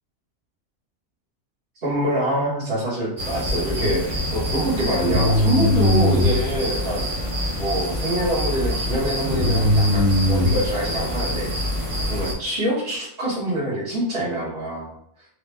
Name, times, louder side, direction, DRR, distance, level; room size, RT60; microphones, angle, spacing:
voice 1, 1.8-7.0 7.6-11.5 12.1-14.9, right 1 dB, 55° right, -13 dB, 1.6 m, -25 dB
sound 1, 3.2-12.3, left 1 dB, 30° right, 0.9 m, -22 dB
4.7 x 2.3 x 3.3 m, 0.70 s
omnidirectional pair, 1.2 m